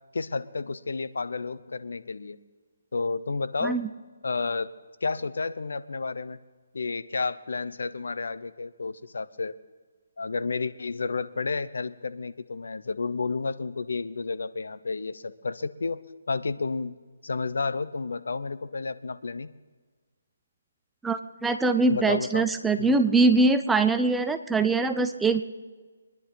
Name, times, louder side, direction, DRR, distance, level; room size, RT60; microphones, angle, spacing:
voice 1, 0.1-2.4 2.9-3.8 4.2-4.7 5.0-6.4 6.7-9.5 10.2-16.0 16.3-17.0 17.2-19.5 21.9-22.4 22.8-22.9, left 4 dB, 75° left, 13 dB, 0.8 m, -31 dB
voice 2, 21.0-25.4, right 3 dB, 5° right, 8 dB, 0.5 m, -23 dB
23.5 x 10.5 x 4.0 m, 1.4 s
hypercardioid pair, 165°, 0 cm